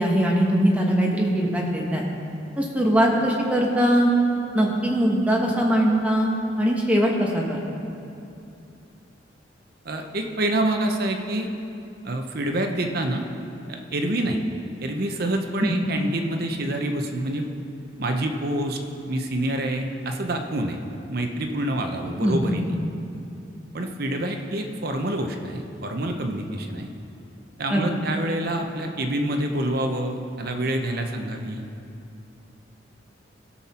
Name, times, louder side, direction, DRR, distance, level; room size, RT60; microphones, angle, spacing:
voice 1, 0.0-2.0 2.6-4.1 4.5-6.3 6.6-7.6 15.6-15.7 22.2-22.6 27.7-27.9, equal, 5° right, -2 dB, 1.2 m, -21 dB
voice 2, 9.8-11.5 12.0-13.3 13.7-14.4 14.8-17.5 18.0-18.8 19.1-20.8 21.1-22.7 23.7-26.9 27.6-31.7, right 1 dB, 55° right, 4 dB, 0.8 m, -27 dB
17.0 x 5.9 x 4.3 m, 2.6 s
head